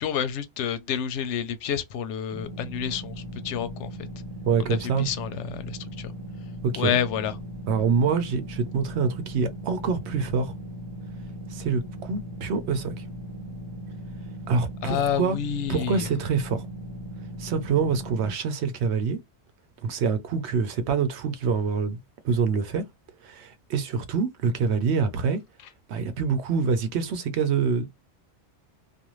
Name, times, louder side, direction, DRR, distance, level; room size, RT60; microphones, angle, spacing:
voice 1, 0.0-3.9 4.6-6.1 6.8-7.4 14.8-16.1, left 8 dB, 85° left, 0.9 m, -29 dB
sound 1, 2.3-18.3, equal, 20° right, 0.7 m, -38 dB
voice 2, 4.5-5.1 6.6-7.0 7.7-10.5 11.5-13.0 14.5-15.4 15.7-16.6 17.4-19.2 19.8-22.0 22.2-22.8 23.2-25.4 25.9-27.9, right 5 dB, 75° right, 0.9 m, -26 dB
2.5 x 2.2 x 3.0 m
omnidirectional pair, 1.2 m